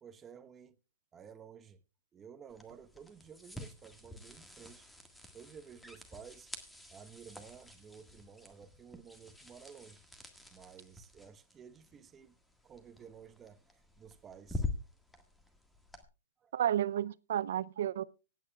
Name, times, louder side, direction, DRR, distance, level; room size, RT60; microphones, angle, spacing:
voice 1, 0.0-0.8 1.1-1.8 2.1-4.9 5.3-6.5 6.9-10.0 10.5-12.3 12.6-14.7 16.4-16.5, right 7 dB, 20° right, 1.0 m, -53 dB
sound 1, 2.5-16.0, left 3 dB, 5° left, 1.7 m, -47 dB
voice 2, 16.5-18.0, right 10 dB, 70° right, 0.6 m, -32 dB
25.0 x 9.2 x 2.3 m
hypercardioid pair, 145°, 0 cm